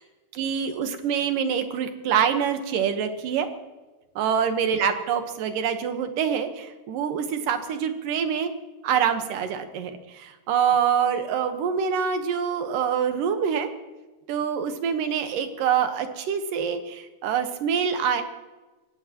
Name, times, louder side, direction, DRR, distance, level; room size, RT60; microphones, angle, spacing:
voice 1, 0.3-3.5 4.2-8.5 8.8-13.7 14.3-18.2, right 7 dB, 80° right, 7 dB, 2.9 m, -25 dB
29.0 x 15.5 x 3.0 m, 1.2 s
omnidirectional pair, 3.8 m